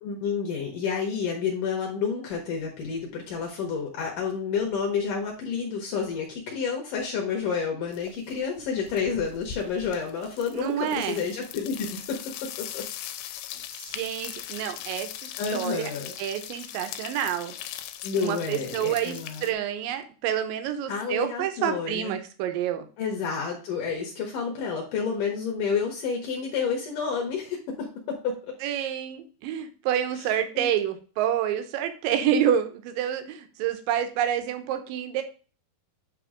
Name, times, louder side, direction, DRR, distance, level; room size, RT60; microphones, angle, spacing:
voice 1, 0.0-12.8 15.4-16.1 18.0-19.5 20.9-22.2 23.0-28.4 30.2-30.7, left 6 dB, 70° left, 0 dB, 2.2 m, -30 dB
sound 1, 7.9-8.3 8.6-19.5, left 11 dB, 85° left, 2.5 m, -40 dB
voice 2, 10.5-11.2 13.7-15.1 15.5-15.9 16.2-17.5 18.2-22.9 28.6-35.2, right 10 dB, 75° right, 8 dB, 2.1 m, -28 dB
8.7 x 3.0 x 4.8 m, 0.37 s
omnidirectional pair, 4.7 m